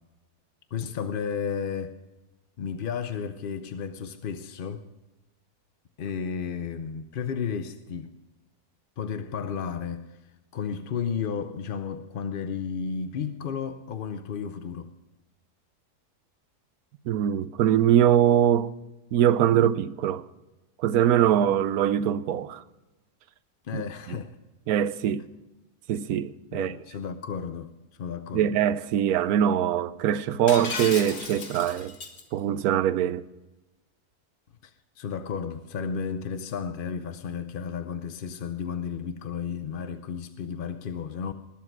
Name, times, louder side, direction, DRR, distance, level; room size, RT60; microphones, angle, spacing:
voice 1, 0.7-2.0 2.6-4.8 6.0-8.1 9.0-10.0 10.5-14.9 23.6-24.4 26.5-27.7 28.0-28.5 34.6-41.3, left 6 dB, 55° left, 0.6 m, -33 dB
voice 2, 17.1-18.7 19.1-20.3 20.8-22.6 23.7-23.8 24.1-24.2 24.7-25.2 25.9-26.7 28.3-32.0 32.3-33.3, right 10 dB, 75° right, 1.1 m, -23 dB
Shatter, 30.5-32.2, left 4 dB, 70° left, 2.0 m, -35 dB
20.0 x 7.5 x 6.0 m
omnidirectional pair, 1.7 m